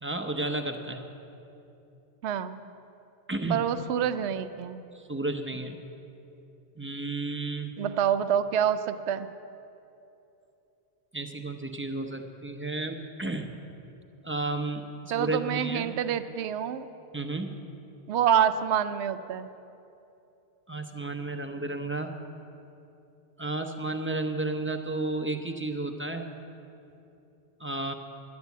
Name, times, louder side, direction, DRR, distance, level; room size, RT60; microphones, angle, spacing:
voice 1, 0.0-1.1 3.3-3.7 4.9-5.8 6.8-7.7 11.1-13.6 14.2-15.9 17.1-17.5 20.7-22.1 23.4-26.3 27.6-27.9, right 2 dB, 15° right, 4 dB, 0.6 m, -32 dB
voice 2, 2.2-2.6 3.5-4.8 7.8-9.3 15.1-16.9 18.1-19.5, right 8 dB, 85° right, 11 dB, 0.9 m, -27 dB
11.5 x 9.6 x 8.3 m, 2.9 s
omnidirectional pair, 1.1 m